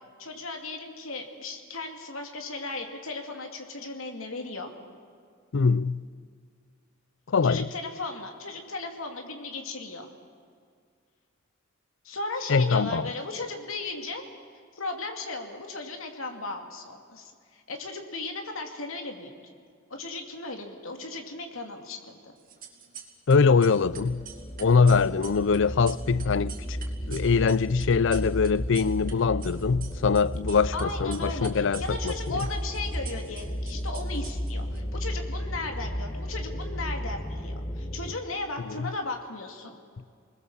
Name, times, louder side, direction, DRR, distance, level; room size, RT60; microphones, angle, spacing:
voice 1, 0.2-4.7 7.4-10.1 12.0-14.3 14.7-19.3 19.9-22.0 22.2-22.3 30.7-39.7, left 3 dB, 85° left, 2.6 m, -36 dB
voice 2, 5.5-6.0 7.3-7.7 12.5-13.1 23.3-24.3 24.6-26.8 27.1-32.5 38.8-38.9, left 5 dB, 65° left, 0.5 m, -23 dB
sound 1, 22.4-23.3 23.6-29.1 29.4-30.8 31.1-34.8, right 8 dB, 45° right, 3.5 m, -44 dB
sound 2, 23.7-38.2, equal, 30° left, 1.5 m, -34 dB
28.5 x 20.5 x 7.4 m
head